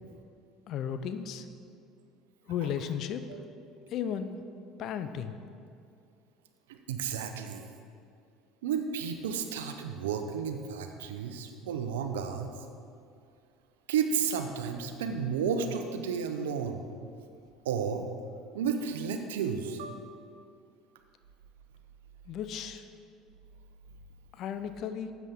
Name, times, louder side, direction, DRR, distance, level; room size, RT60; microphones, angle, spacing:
voice 1, 0.7-1.5 2.5-3.2 3.9-4.3 4.8-5.4 22.3-22.9 24.3-25.1, left 8 dB, 55° left, 10 dB, 0.6 m, -34 dB
voice 2, 6.7-7.6 8.6-12.6 13.9-16.8 17.6-18.0 18.5-20.0, right 6 dB, 80° right, 6 dB, 0.8 m, -32 dB
12.5 x 8.2 x 3.7 m, 2.4 s
hypercardioid pair, 70°, 0 cm